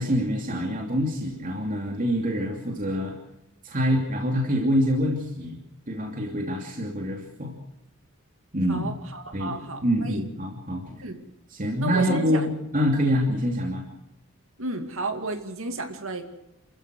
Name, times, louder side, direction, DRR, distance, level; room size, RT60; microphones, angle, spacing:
voice 1, 0.0-3.2 3.6-5.6 5.9-7.5 8.5-8.9 9.3-9.6 9.8-11.0 11.5-13.8, equal, 35° right, 1 dB, 2.7 m, -26 dB
voice 2, 8.7-10.3 11.0-11.2 11.8-12.5 14.6-16.2, right 2 dB, 65° right, 7 dB, 2.4 m, -32 dB
29.0 x 14.5 x 6.4 m, 0.86 s
head